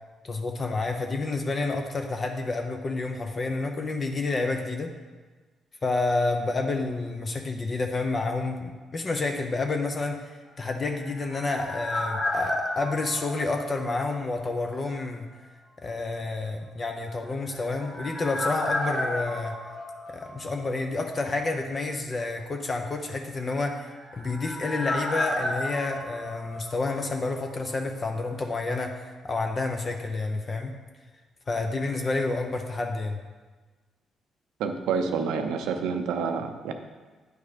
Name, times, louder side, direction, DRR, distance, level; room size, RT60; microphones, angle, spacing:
voice 1, 0.2-4.9 5.8-15.2 15.8-19.5 20.1-30.7 31.5-33.2, left 3 dB, 35° left, 4 dB, 0.6 m, -29 dB
sound 1, 10.6-14.5 14.7-14.8 17.2-20.9 21.2-21.3 23.6-27.4 27.7-27.8, left 1 dB, 55° left, 1.4 m, -33 dB
voice 2, 34.6-36.7, right 5 dB, 90° right, 6 dB, 0.6 m, -28 dB
9.3 x 3.3 x 5.0 m, 1.3 s
cardioid pair, 90°, 0 cm